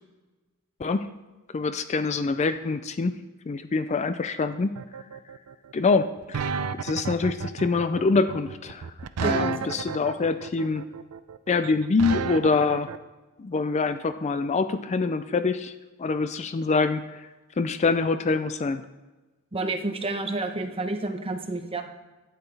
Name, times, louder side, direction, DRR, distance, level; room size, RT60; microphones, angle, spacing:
voice 1, 1.5-4.7 5.7-6.5 6.8-8.8 9.2-10.8 11.5-12.9 13.4-15.7 16.0-17.2 17.6-18.8, left 4 dB, 30° left, 11 dB, 0.3 m, -25 dB
sound 1, 4.8-13.0, right 6 dB, 90° right, 0.5 m, -32 dB
voice 2, 9.2-9.8 19.5-21.8, right 2 dB, 25° right, 5 dB, 0.9 m, -30 dB
12.0 x 9.0 x 3.3 m, 1.2 s
head